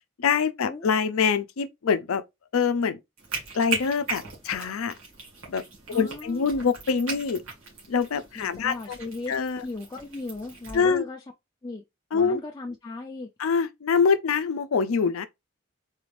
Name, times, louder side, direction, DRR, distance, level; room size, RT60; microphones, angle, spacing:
voice 1, 0.2-2.2 2.5-3.0 3.5-4.9 5.5-5.6 5.9-7.4 7.9-8.7 9.3-9.6 10.7-11.0 12.1-12.4 13.4-15.3, left 5 dB, 85° left, 0.5 m, -24 dB
sound 1, 3.2-10.8, right 5 dB, 80° right, 1.8 m, -38 dB
voice 2, 5.9-6.5 8.4-11.2 11.6-11.8 12.1-13.3, left 3 dB, 20° left, 0.3 m, -37 dB
3.9 x 2.5 x 3.2 m
head